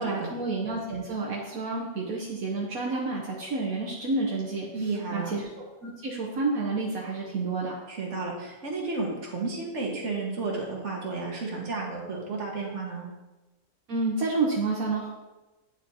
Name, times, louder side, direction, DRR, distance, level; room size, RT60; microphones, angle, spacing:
voice 1, 0.0-4.8 5.1-5.5 5.8-7.7 13.9-15.1, right 3 dB, 75° right, -4 dB, 1.4 m, -29 dB
voice 2, 4.7-5.3 7.9-13.1, right 3 dB, 55° right, -2 dB, 1.7 m, -32 dB
9.7 x 5.1 x 2.8 m, 1.1 s
omnidirectional pair, 1.5 m